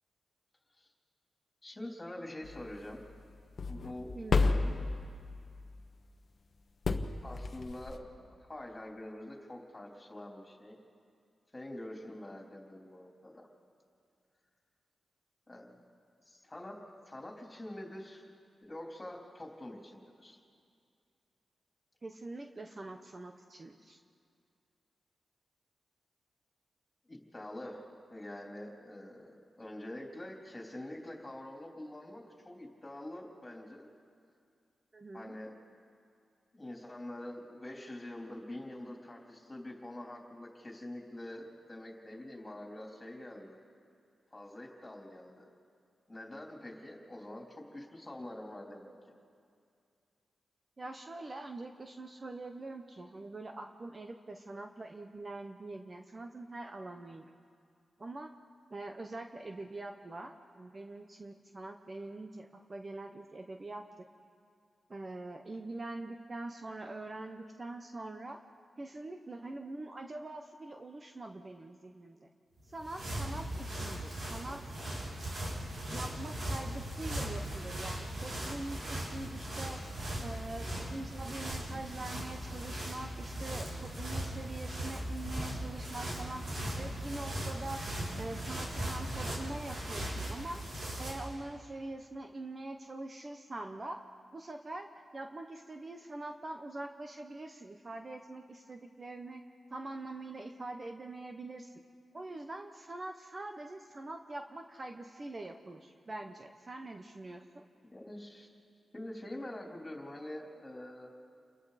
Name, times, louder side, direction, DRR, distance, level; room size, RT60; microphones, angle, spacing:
voice 1, 1.6-3.0 3.7-4.9 7.2-10.8 11.5-13.5 15.5-15.8 16.2-18.3 18.6-20.4 27.1-29.3 29.6-33.9 35.1-35.5 36.5-43.6 44.3-45.5 46.1-48.9 107.9-108.5 108.9-111.1, left 1 dB, 20° left, -1 dB, 3.6 m, -45 dB
sound 1, 2.4-5.7 6.9-8.0, left 3 dB, 55° left, 1.1 m, -33 dB
voice 2, 4.1-4.8 22.0-24.0 34.9-35.3 50.8-57.3 58.0-58.3 58.7-64.1 64.9-68.4 68.8-72.3 72.7-74.8 75.9-79.8 80.2-86.5 86.7-87.8 88.2-90.6 91.0-94.0 94.3-99.4 99.7-101.7 102.1-107.6, right 2 dB, 30° right, 5 dB, 1.0 m, -44 dB
sound 2, 72.6-91.3, right 1 dB, 65° right, 6.1 m, -38 dB
29.0 x 22.0 x 4.2 m, 2.3 s
wide cardioid pair, 95°, 0 cm